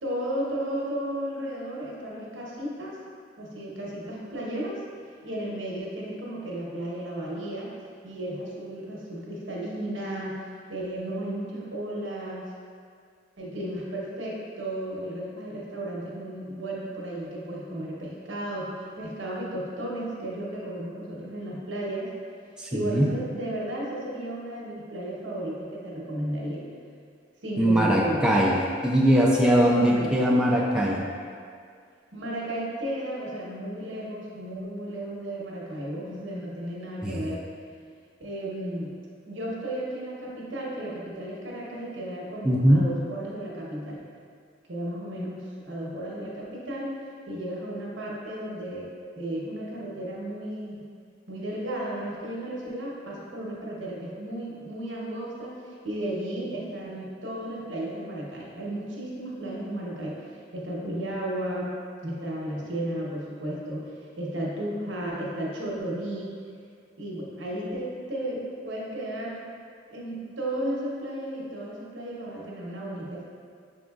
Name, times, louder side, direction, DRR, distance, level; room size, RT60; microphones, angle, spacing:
voice 1, 0.0-3.0 3.4-4.8 5.2-7.7 8.0-10.4 10.7-12.5 13.4-22.1 22.7-26.7 27.4-28.3 29.7-30.2 32.1-37.4 38.2-39.0 39.2-44.1 44.7-46.9 47.3-48.9 49.1-50.8 51.3-60.2 60.5-61.7 62.0-66.4 67.0-69.4 69.9-73.2, right 1 dB, 80° right, -4 dB, 1.0 m, -34 dB
voice 2, 22.6-23.1 27.6-28.6 28.8-31.0 37.0-37.2 42.4-42.9, equal, 5° right, -4 dB, 0.4 m, -21 dB
6.1 x 3.7 x 2.3 m, 2.2 s
head